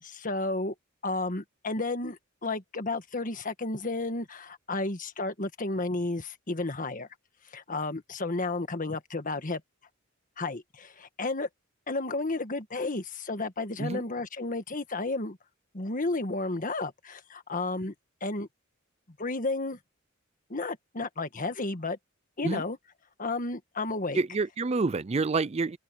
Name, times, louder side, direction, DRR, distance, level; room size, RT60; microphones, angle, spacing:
voice 1, 0.0-0.7 1.0-7.1 7.5-9.6 10.4-11.5 11.9-15.4 15.7-17.9 18.2-18.5 19.2-19.8 20.5-22.0 22.4-22.8 23.2-24.2, left 2 dB, 40° left, 1.6 m, -32 dB
voice 2, 24.1-25.8, right 4 dB, 30° right, 0.4 m, -28 dB
open air
head